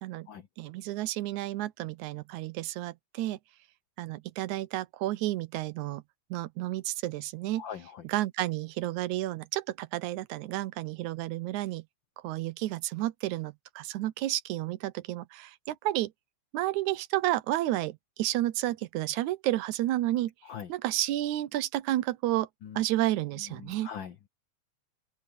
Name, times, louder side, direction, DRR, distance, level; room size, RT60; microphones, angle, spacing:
voice 1, 0.6-3.4 4.0-6.0 6.3-7.6 8.0-11.8 12.2-16.1 16.5-20.3 20.7-22.5 22.8-23.9, right 15 dB, 85° right, 2.2 m, -31 dB
voice 2, 7.6-8.0 20.4-20.7 22.6-22.8 23.6-24.3, left 8 dB, 85° left, 1.0 m, -41 dB
open air
omnidirectional pair, 3.3 m